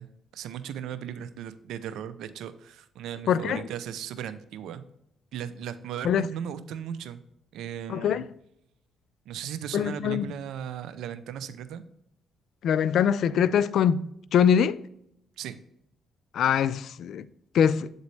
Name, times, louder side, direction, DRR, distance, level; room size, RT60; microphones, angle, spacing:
voice 1, 0.0-4.8 5.3-7.2 7.5-8.2 9.3-11.8 15.4-15.6, right 9 dB, 80° right, 0.5 m, -37 dB
voice 2, 3.3-3.6 6.0-6.3 7.9-8.2 9.7-10.3 12.6-14.1 14.3-14.8 16.3-17.2 17.5-17.9, left 8 dB, 70° left, 0.3 m, -23 dB
8.2 x 4.0 x 3.2 m
cardioid pair, 85°, 0 cm